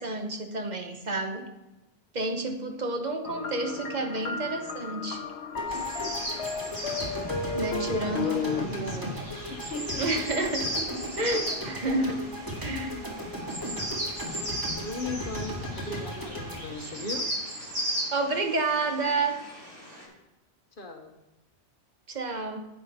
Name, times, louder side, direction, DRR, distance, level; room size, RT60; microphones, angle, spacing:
voice 1, 0.0-1.5 2.1-5.2 7.5-9.1 10.0-10.7 11.2-12.2 12.6-13.0 18.1-19.3 22.1-22.7, right 2 dB, 45° right, 5 dB, 1.1 m, -30 dB
sound 1, 3.2-8.7, left 5 dB, 85° left, 1.1 m, -33 dB
sound 2, 5.6-17.8, equal, 20° right, 1.9 m, -37 dB
sound 3, 5.7-20.0, equal, 70° right, 4.8 m, -37 dB
voice 2, 8.2-10.2 12.7-13.0 14.7-17.3 20.8-21.2, left 2 dB, 55° left, 5 dB, 1.1 m, -38 dB
10.5 x 8.2 x 4.2 m, 0.99 s
omnidirectional pair, 1.1 m